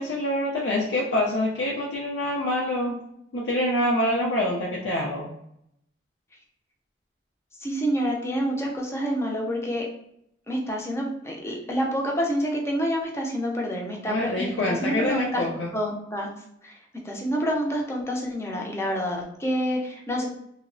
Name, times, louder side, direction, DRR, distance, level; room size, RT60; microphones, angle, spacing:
voice 1, 0.0-3.0 3.3-5.3 14.1-15.7, left 1 dB, 80° left, -4 dB, 0.4 m, -26 dB
voice 2, 7.6-9.9 10.5-15.4 15.7-16.3 16.6-16.7 17.0-20.3, equal, 15° left, 0 dB, 0.4 m, -28 dB
2.7 x 2.0 x 2.5 m, 0.76 s
head